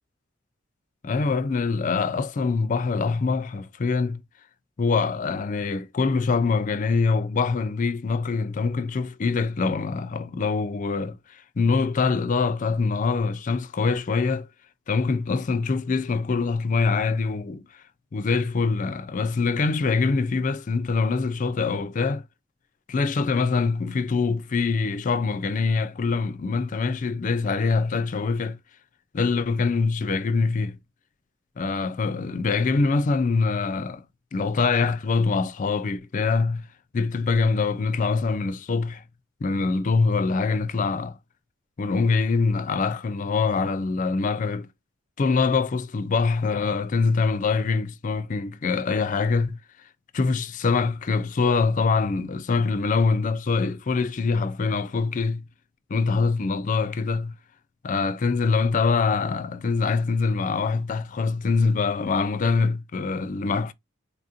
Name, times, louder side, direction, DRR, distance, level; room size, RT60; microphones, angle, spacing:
voice 1, 1.0-4.2 4.8-11.2 11.6-14.5 14.9-17.6 18.1-22.2 22.9-28.6 29.1-30.8 31.6-34.0 34.3-36.7 36.9-39.0 39.4-41.1 41.8-44.7 45.2-49.6 50.1-55.4 55.9-57.3 57.8-63.7, left 4 dB, 40° left, 0.4 m, -24 dB
4.1 x 2.5 x 2.8 m
head